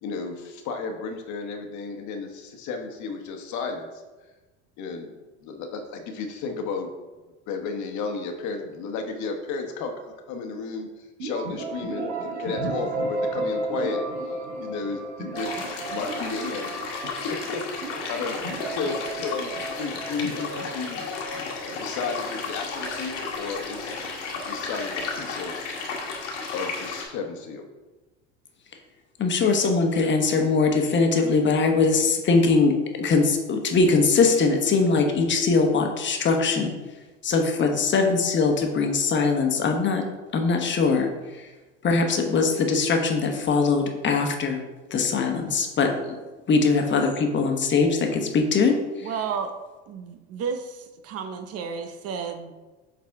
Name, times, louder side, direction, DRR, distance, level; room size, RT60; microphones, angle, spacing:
voice 1, 0.0-4.0 4.8-6.9 7.5-15.6 15.9-16.7 17.0-17.6 18.1-21.0 21.8-23.9 24.5-25.6 26.5-27.6, left 4 dB, 50° left, 4 dB, 1.2 m, -33 dB
sound 1, 11.2-22.9, right 2 dB, 75° right, 2.0 m, -33 dB
sound 2, 15.3-27.0, left 4 dB, 80° left, 1.6 m, -33 dB
voice 2, 29.2-36.7 37.2-40.0 40.3-41.5 41.8-44.6 44.9-46.2 46.5-49.1, left 4 dB, 30° left, 3 dB, 1.2 m, -22 dB
voice 3, 49.0-49.5 49.9-52.5, right 6 dB, 45° right, 6 dB, 0.8 m, -32 dB
7.4 x 4.0 x 3.6 m, 1.2 s
hypercardioid pair, 80°, 36 cm